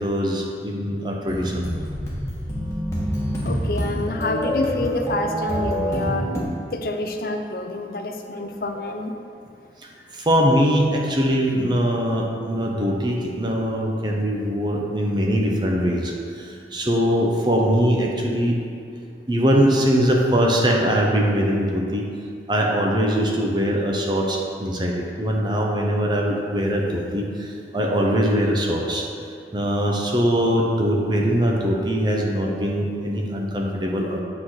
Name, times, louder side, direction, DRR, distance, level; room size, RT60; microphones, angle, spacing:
voice 1, 0.0-1.7 10.1-18.6 19.3-22.0 22.5-29.0 29.5-34.2, equal, 25° right, -1 dB, 0.8 m, -22 dB
sound 1, 1.3-6.4, equal, 15° left, 1.4 m, -26 dB
voice 2, 3.4-6.4 6.7-9.2, left 2 dB, 55° left, 5 dB, 0.6 m, -28 dB
8.5 x 3.9 x 6.4 m, 2.3 s
head